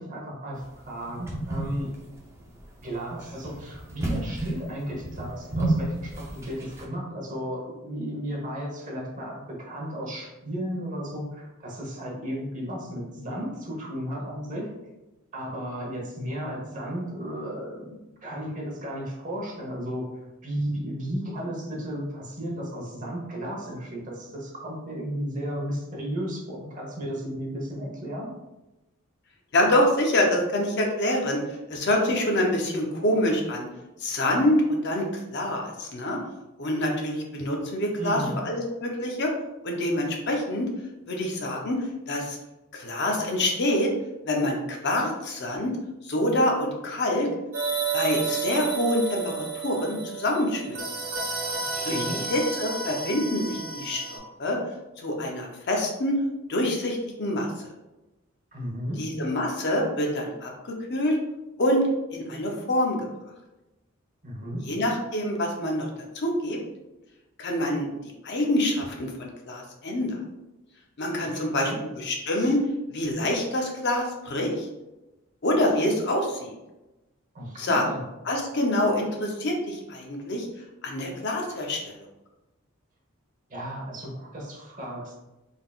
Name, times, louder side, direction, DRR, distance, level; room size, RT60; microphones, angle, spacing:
voice 1, 0.0-1.9 2.8-14.7 15.3-20.0 20.4-28.3 38.0-38.4 51.7-52.2 58.5-59.0 64.2-64.6 71.2-71.8 77.3-78.0 83.5-85.1, equal, 35° right, -2 dB, 1.0 m, -34 dB
sound 1, 0.6-6.8, right 1 dB, 10° right, 0.5 m, -32 dB
voice 2, 29.5-31.4 31.7-33.7 34.0-36.2 36.6-39.3 39.6-40.7 41.1-42.4 42.7-43.9 44.3-45.7 46.0-47.3 47.9-50.8 51.8-54.6 55.0-56.2 56.5-57.7 59.0-60.5 60.9-61.2 61.6-63.0 64.7-65.9 66.1-66.6 67.4-67.9 68.2-70.2 71.0-71.7 72.0-72.6 72.9-74.7 75.4-76.5 77.6-77.8 78.3-80.5 80.8-82.0, left 1 dB, 55° left, 1 dB, 0.6 m, -26 dB
sound 2, 47.5-54.2, right 4 dB, 65° right, 1.0 m, -31 dB
3.8 x 3.5 x 2.3 m, 1.0 s
head